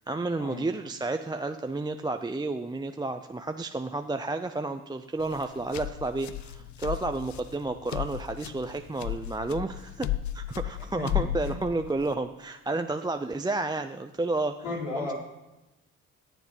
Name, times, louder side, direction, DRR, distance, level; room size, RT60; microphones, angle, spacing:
voice 1, 0.0-10.1 10.3-14.6 14.9-15.1, right 2 dB, 10° right, 7 dB, 0.6 m, -31 dB
sound 1, 5.2-12.1, left 13 dB, 50° left, 0.6 m, -34 dB
voice 2, 10.8-11.6 14.6-15.1, left 2 dB, 85° left, -4 dB, 4.3 m, -35 dB
17.5 x 7.2 x 5.4 m, 0.99 s
supercardioid pair, 65°, 37 cm